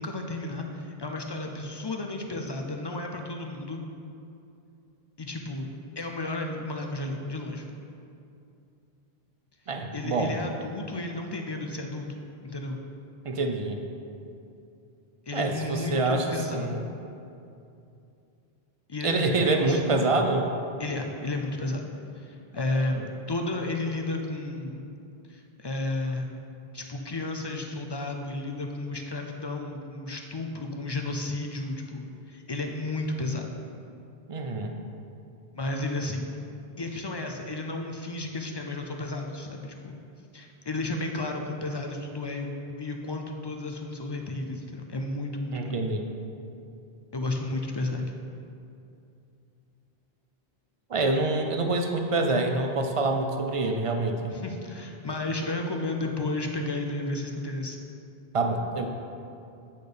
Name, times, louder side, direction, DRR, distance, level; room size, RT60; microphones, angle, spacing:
voice 1, 0.0-3.8 5.2-5.7 6.0-7.7 9.9-12.8 15.3-16.8 18.9-20.0 20.8-21.9 22.1-23.0 23.3-24.8 25.3-26.3 26.7-33.5 35.6-36.3 36.8-40.0 40.3-45.8 47.1-48.1 54.3-57.8, left 2 dB, 45° left, 2 dB, 0.3 m, -33 dB
voice 2, 9.7-10.4 13.2-13.8 15.3-16.9 19.0-20.5 22.9-23.0 34.3-34.7 45.5-46.0 50.9-54.4 58.3-58.9, right 2 dB, 45° right, 4 dB, 0.5 m, -26 dB
8.3 x 4.2 x 5.0 m, 2.6 s
omnidirectional pair, 1.0 m